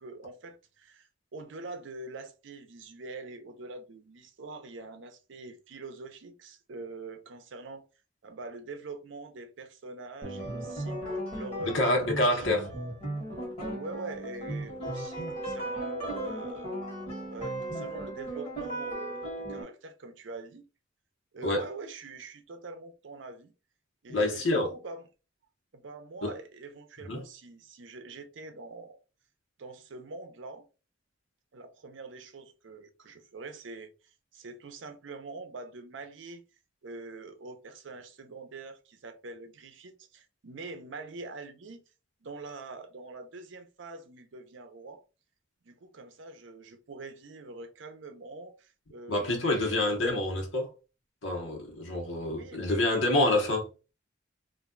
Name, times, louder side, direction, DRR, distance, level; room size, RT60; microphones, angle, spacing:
voice 1, 0.0-7.8 8.2-13.0 13.7-16.7 17.3-20.7 21.3-23.5 24.0-25.0 25.7-29.0 29.6-30.6 31.5-36.4 36.8-41.8 42.2-45.0 45.6-49.9 52.2-53.3, right 3 dB, 75° right, 0.6 m, -44 dB
sound 1, 10.2-19.6, right 1 dB, 35° left, 1.4 m, -36 dB
voice 2, 11.6-12.7 21.4-21.6 24.1-24.7 26.2-26.3 27.1-27.2 49.1-50.7 51.2-53.7, left 1 dB, 80° left, 1.0 m, -27 dB
2.5 x 2.2 x 3.7 m
head